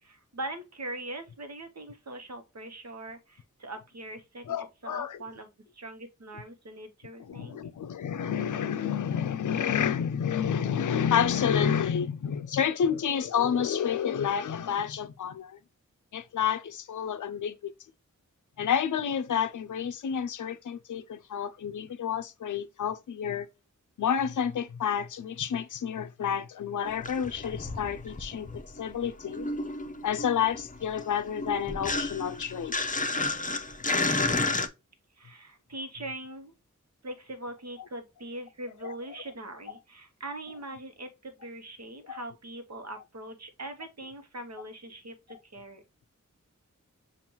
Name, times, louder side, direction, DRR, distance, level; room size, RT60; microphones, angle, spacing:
voice 1, 0.0-5.5 5.7-7.6 35.2-36.5 37.0-45.8, right 1 dB, 55° right, 1.0 m, -41 dB
voice 2, 4.5-5.2 7.2-15.6 16.1-17.7 18.6-23.5 24.0-29.5 30.0-32.8 38.8-38.9 42.1-42.2, left 8 dB, 75° left, 0.5 m, -29 dB
sound 1, 26.9-28.8 29.0-34.7, left 2 dB, 25° left, 0.6 m, -31 dB
7.0 x 2.5 x 2.9 m
wide cardioid pair, 75°, 31 cm